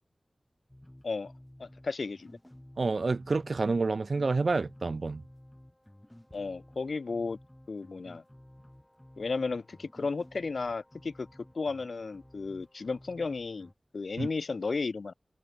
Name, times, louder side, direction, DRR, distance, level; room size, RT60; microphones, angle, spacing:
sound 1, 0.7-13.7, left 1 dB, 10° left, 4.6 m, -54 dB
voice 1, 1.6-2.4 6.3-7.4 7.7-8.2 9.2-11.3 11.5-15.1, left 4 dB, 80° left, 2.8 m, -34 dB
voice 2, 2.8-5.2 14.2-14.3, right 3 dB, 70° right, 0.6 m, -28 dB
wide cardioid pair, 75°, 0 cm